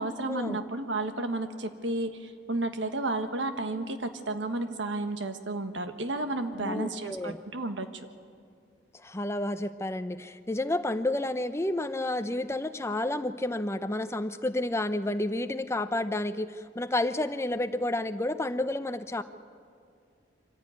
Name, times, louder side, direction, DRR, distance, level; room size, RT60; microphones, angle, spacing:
voice 1, 0.0-7.9, right 2 dB, 90° right, 8 dB, 1.5 m, -32 dB
voice 2, 6.6-7.4 9.0-19.2, left 1 dB, 15° left, 10 dB, 0.7 m, -30 dB
24.5 x 15.5 x 9.5 m, 2.4 s
head